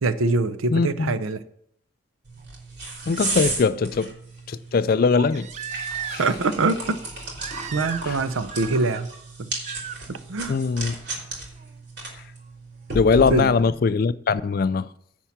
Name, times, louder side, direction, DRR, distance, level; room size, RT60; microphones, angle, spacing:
voice 1, 0.0-1.4 6.2-7.0 7.7-9.1 9.4-9.5 10.1-10.6 13.3-13.5, right 3 dB, 80° right, 0.6 m, -24 dB
voice 2, 0.7-1.1 3.1-4.1 4.5-5.5 6.1-6.2 8.1-8.2 10.5-10.9 12.9-14.9, left 4 dB, 45° left, 0.3 m, -21 dB
sound 1, 2.3-13.7, right 2 dB, 55° right, 3.2 m, -34 dB
Crying sobbing, 2.4-2.5 5.1-6.5 7.4-8.2 8.5-9.0 9.6-10.0 11.6-11.7, right 8 dB, 35° right, 0.4 m, -35 dB
10.0 x 4.5 x 7.1 m
head